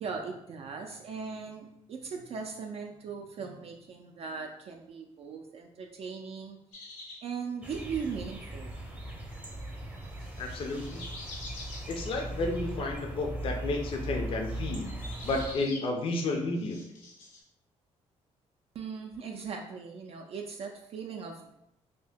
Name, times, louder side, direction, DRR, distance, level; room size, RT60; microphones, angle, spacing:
voice 1, 0.0-6.6 7.2-8.7 18.7-21.5, right 5 dB, 55° right, 2 dB, 0.4 m, -39 dB
sound 1, 6.7-7.2 10.0-11.9 12.9-13.1 13.7-14.0 14.7-15.9 16.3-17.4, left 3 dB, 90° left, 1.0 m, -46 dB
sound 2, 7.6-15.5, right 1 dB, 10° right, 0.6 m, -39 dB
voice 2, 10.4-11.1 11.9-14.9 15.2-16.8, left 2 dB, 45° left, 3 dB, 0.5 m, -32 dB
2.8 x 2.6 x 3.4 m, 0.82 s
cardioid pair, 110°, 12 cm